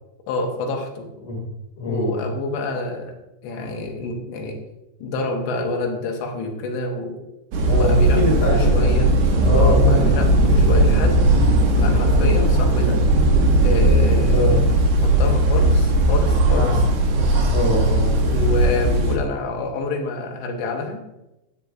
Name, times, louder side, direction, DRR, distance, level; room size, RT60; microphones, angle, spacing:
voice 1, 0.3-1.1 1.8-3.2 3.4-4.6 5.0-7.2 7.6-9.2 9.6-11.4 11.7-13.0 13.6-14.6 15.0-16.8 18.2-21.0, left 2 dB, 75° left, 2 dB, 3.0 m, -27 dB
voice 2, 1.8-2.2 7.7-8.9 9.4-10.0 14.3-14.5 16.5-16.7 17.1-18.1, left 1 dB, 40° left, -3 dB, 2.4 m, -24 dB
sound 1, 7.5-19.2, right 1 dB, 70° right, 2.7 m, -17 dB
13.0 x 8.2 x 2.5 m, 0.94 s
omnidirectional pair, 5.5 m